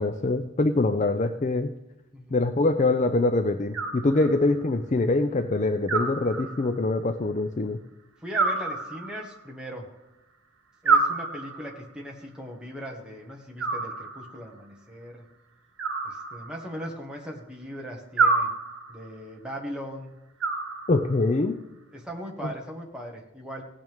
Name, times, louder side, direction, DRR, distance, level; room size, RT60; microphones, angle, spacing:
voice 1, 0.0-1.7 2.3-7.8 20.9-21.6 22.4-22.5, left 2 dB, 35° left, 9 dB, 0.4 m, -24 dB
voice 2, 2.1-2.4 8.2-9.9 10.8-15.2 16.0-18.5 18.9-20.1 21.9-23.6, equal, 5° right, -2 dB, 1.5 m, -39 dB
Animal, 3.7-4.6 5.9-6.9 8.3-9.4 10.8-11.9 13.6-14.5 15.8-16.9 18.2-19.1 20.4-21.3, right 4 dB, 75° right, 1.4 m, -28 dB
17.0 x 8.9 x 3.6 m, 0.95 s
head